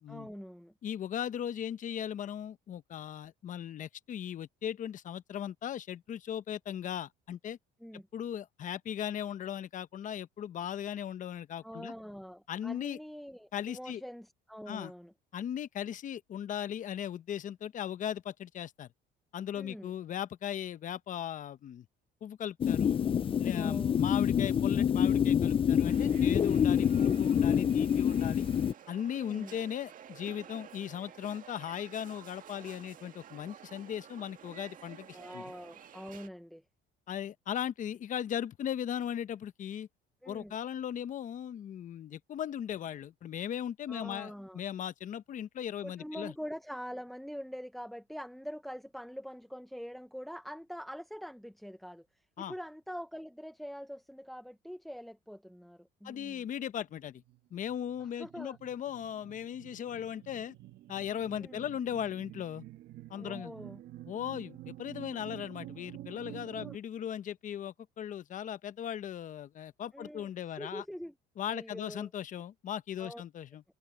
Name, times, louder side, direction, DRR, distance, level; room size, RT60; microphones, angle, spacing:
voice 1, 0.1-0.7 7.8-8.1 11.6-15.1 19.5-19.9 23.5-24.1 29.1-29.5 35.1-36.6 40.2-40.5 43.9-44.6 45.8-56.5 58.0-58.6 61.4-61.7 63.2-63.8 66.5-66.8 69.9-70.3 70.6-71.1 71.5-72.1 73.0-73.2, equal, ahead, 0.9 m, -44 dB
voice 2, 0.8-7.6 8.1-11.9 12.5-13.0 13.5-14.0 14.7-14.9 15.3-18.9 19.3-21.9 22.2-23.0 23.4-28.5 28.9-35.4 37.1-39.9 40.3-46.3 52.4-52.5 56.0-57.2 57.5-60.5 60.9-62.6 63.1-63.5 64.1-70.8 71.4-73.6, left 9 dB, 45° left, 0.9 m, -38 dB
sound 1, 22.6-28.7, left 8 dB, 30° left, 0.5 m, -27 dB
sound 2, 25.8-36.3, right 9 dB, 45° right, 1.8 m, -52 dB
sound 3, 57.0-66.8, right 14 dB, 65° right, 1.9 m, -49 dB
cardioid pair, 110°, 19 cm